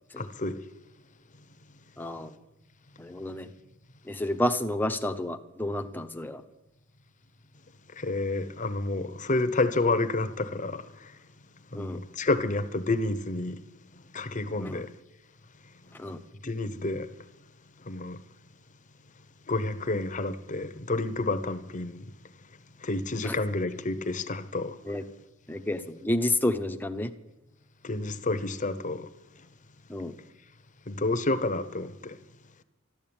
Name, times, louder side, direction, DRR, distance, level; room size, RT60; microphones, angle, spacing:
voice 1, 0.2-0.6 8.0-10.8 11.7-13.6 14.1-14.9 16.4-17.1 17.9-18.2 19.5-22.0 22.8-24.8 27.8-29.1 30.9-32.2, left 2 dB, 35° left, 0.9 m, -29 dB
voice 2, 2.0-2.3 3.0-3.5 4.1-6.4 11.7-12.0 14.6-14.8 16.0-16.2 23.2-23.3 24.8-25.0 25.5-27.1 29.9-30.1, left 1 dB, 10° left, 0.8 m, -30 dB
12.5 x 12.5 x 8.9 m
head